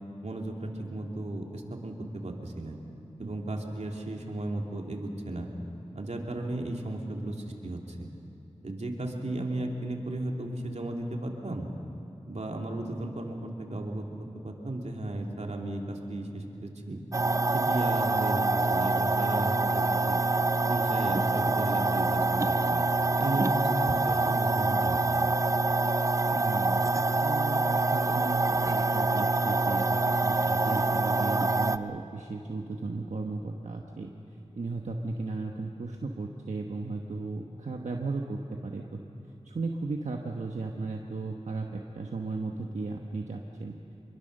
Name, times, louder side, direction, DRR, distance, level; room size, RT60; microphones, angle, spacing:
voice 1, 0.2-1.9 2.2-2.8 3.2-5.5 5.9-7.4 7.6-8.1 8.6-11.7 12.3-14.0 14.4-17.0 17.5-20.2 20.7-22.8 23.2-25.0, right 1 dB, 70° right, 1 dB, 2.8 m, -35 dB
sound 1, 17.1-31.8, right 2 dB, 30° right, 0.6 m, -26 dB
voice 2, 26.3-34.1 34.6-38.8 39.4-43.8, right 3 dB, 90° right, 1 dB, 1.2 m, -35 dB
26.0 x 22.5 x 6.7 m, 2.7 s
wide cardioid pair, 50°, 12 cm